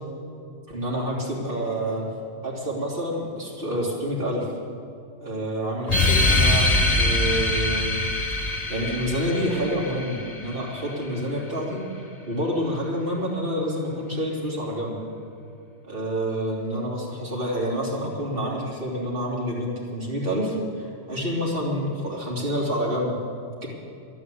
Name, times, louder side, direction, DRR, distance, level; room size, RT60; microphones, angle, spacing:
voice 1, 0.7-2.1 2.4-4.5 5.2-8.0 8.5-11.8 12.3-15.0 15.8-23.2 23.6-23.7, equal, 55° right, -5 dB, 3.2 m, -28 dB
sound 1, 5.9-10.9, left 2 dB, 35° left, 1.6 m, -23 dB
12.5 x 12.0 x 8.4 m, 2.6 s
omnidirectional pair, 1.1 m